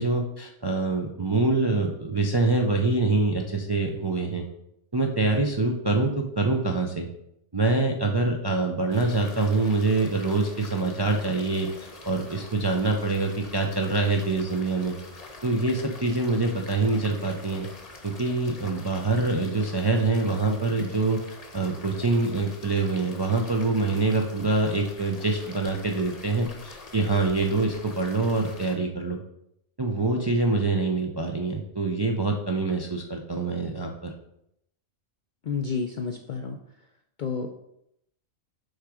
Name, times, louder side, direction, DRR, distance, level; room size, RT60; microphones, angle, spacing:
voice 1, 0.0-4.5 4.9-7.1 7.5-15.0 15.4-17.7 18.0-21.2 21.5-29.2 29.8-34.1, right 3 dB, 35° right, 1 dB, 0.4 m, -25 dB
sound 1, 8.9-28.8, left 3 dB, 35° left, 0.9 m, -45 dB
voice 2, 35.4-36.6 37.2-37.5, left 5 dB, 60° left, 3 dB, 0.5 m, -30 dB
6.4 x 3.5 x 4.8 m, 0.78 s
omnidirectional pair, 1.3 m